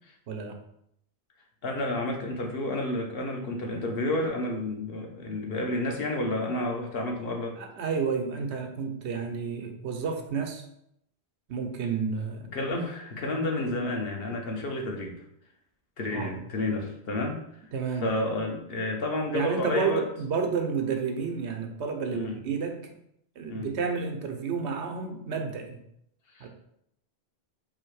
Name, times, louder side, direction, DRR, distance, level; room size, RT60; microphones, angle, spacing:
voice 1, 0.3-0.6 7.6-10.6 11.5-12.5 16.1-16.3 17.7-18.1 19.3-22.8 23.4-25.8 26.4-26.5, right 5 dB, 85° right, 4 dB, 1.0 m, -30 dB
voice 2, 1.6-7.6 12.5-15.1 16.0-17.4 18.0-20.0 22.1-22.3 23.5-23.7 26.3-26.5, left 2 dB, 65° left, 1 dB, 1.0 m, -30 dB
3.9 x 2.7 x 4.6 m, 0.74 s
omnidirectional pair, 1.1 m